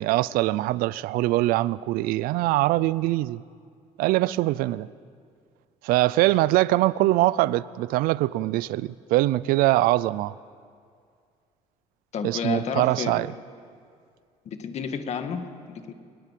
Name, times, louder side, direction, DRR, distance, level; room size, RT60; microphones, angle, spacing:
voice 1, 0.0-3.4 4.0-4.9 5.8-10.3 12.2-13.3, right 17 dB, 85° right, 0.5 m, -23 dB
voice 2, 12.1-13.1 14.5-15.9, left 6 dB, 50° left, 2.1 m, -31 dB
23.0 x 21.5 x 7.7 m
cardioid pair, 135°, 15 cm